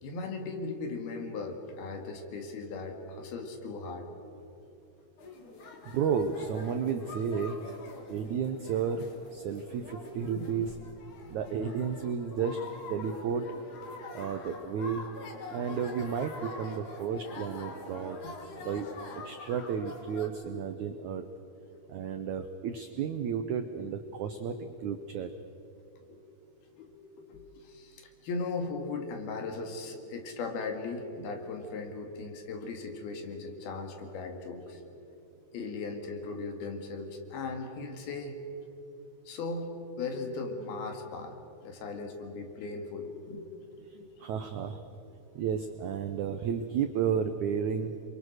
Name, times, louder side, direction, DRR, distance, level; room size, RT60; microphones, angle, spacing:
voice 1, 0.0-4.1 5.0-5.1 5.7-5.8 10.0-10.5 11.5-11.6 13.0-13.1 14.0-14.1 21.7-21.8 22.1-22.2 26.0-26.2 26.7-34.8 35.5-38.4 39.3-41.4 41.6-44.1, left 3 dB, 70° left, 4 dB, 3.9 m, -38 dB
sound 1, 5.2-20.3, left 3 dB, 55° left, 3.6 m, -45 dB
voice 2, 5.8-7.6 8.1-10.7 11.3-13.5 14.1-15.0 15.5-18.2 18.6-18.9 19.2-21.3 21.9-25.3 44.2-44.8 45.3-48.0, right 7 dB, 80° right, 7 dB, 1.7 m, -32 dB
28.0 x 23.5 x 6.4 m, 2.8 s
omnidirectional pair, 4.6 m